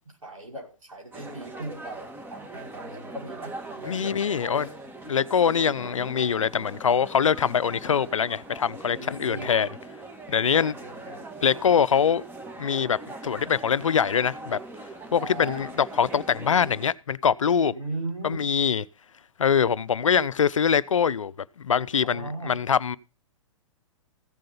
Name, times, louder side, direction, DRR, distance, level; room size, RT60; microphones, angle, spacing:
voice 1, 0.2-4.8 9.0-9.6 10.5-11.2 15.2-15.6 17.7-18.5 22.0-22.6, right 2 dB, 85° right, 5.5 m, -38 dB
sound 1, 1.1-16.9, right 2 dB, 10° right, 2.3 m, -41 dB
voice 2, 3.8-4.7 5.1-9.7 10.3-10.7 11.4-12.2 12.6-13.0 13.2-14.6 15.1-17.7 18.2-18.9 19.4-21.3 21.6-23.0, left 7 dB, 70° left, 0.7 m, -23 dB
15.5 x 7.7 x 5.3 m
figure-of-eight pair, 110°, 17 cm